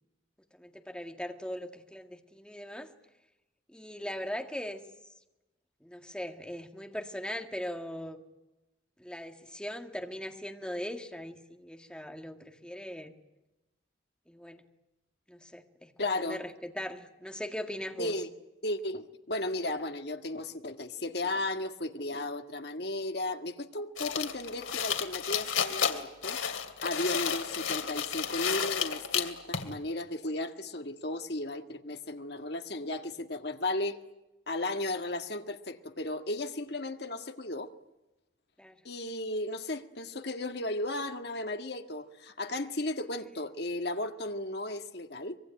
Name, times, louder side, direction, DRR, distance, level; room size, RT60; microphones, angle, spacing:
voice 1, 0.5-2.9 3.7-5.1 5.8-8.2 9.0-13.1 14.3-14.6 15.3-15.9 16.2-18.2 38.6-38.8, equal, 5° left, 1.9 m, -40 dB
voice 2, 16.0-16.4 18.0-18.3 18.6-26.4 26.8-34.0 34.5-37.7 38.9-45.4, left 2 dB, 55° left, 1.8 m, -35 dB
sound 1, 24.0-29.7, left 7 dB, 90° left, 2.7 m, -32 dB
25.0 x 23.0 x 9.2 m
head